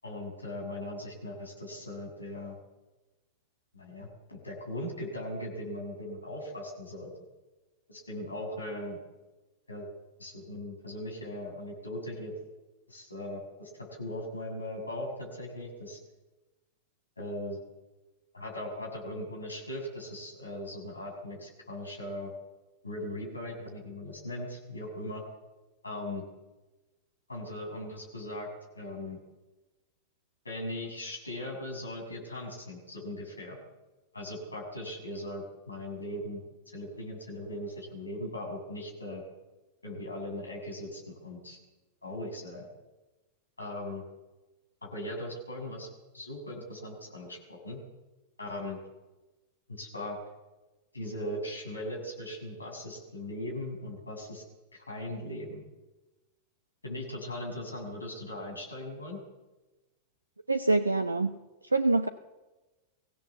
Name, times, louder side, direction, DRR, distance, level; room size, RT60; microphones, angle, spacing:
voice 1, 0.0-2.6 3.7-7.1 7.9-9.0 9.7-9.9 10.2-12.3 12.9-16.0 17.2-17.6 18.3-22.3 22.8-25.2 25.8-26.2 27.3-28.5 28.7-29.2 30.4-33.6 34.1-39.2 39.8-41.6 42.0-42.7 43.6-44.0 44.8-45.9 46.1-47.8 48.4-48.8 49.7-50.2 50.9-54.4 54.7-55.6 56.8-59.2, left 1 dB, 80° left, 1 dB, 6.7 m, -39 dB
voice 2, 60.5-61.4 61.7-62.1, right 2 dB, 80° right, 12 dB, 0.8 m, -25 dB
23.5 x 16.5 x 7.1 m, 1.1 s
figure-of-eight pair, 90°, 0 cm